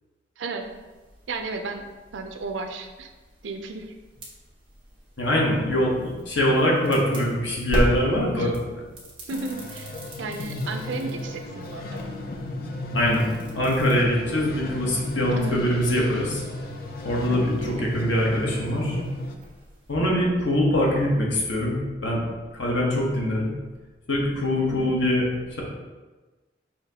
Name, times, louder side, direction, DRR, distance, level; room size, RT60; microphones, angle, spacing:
voice 1, 0.4-0.7 1.3-1.8 2.1-3.1 3.4-3.9 8.1-8.5 9.3-12.0 15.3-15.5 17.3-17.9 20.0-20.3 24.6-25.0, right 3 dB, 80° right, 6 dB, 0.5 m, -34 dB
sound 1, 0.6-19.9, equal, 25° right, 1.1 m, -38 dB
voice 2, 5.2-8.5 12.9-13.2 13.5-16.4 17.0-19.0 19.9-22.2 22.5-23.5 24.1-25.3, left 1 dB, 85° left, -3 dB, 1.1 m, -23 dB
sound 2, 9.3-19.3, left 1 dB, 50° left, 0.4 m, -34 dB
5.6 x 2.9 x 2.8 m, 1.2 s
head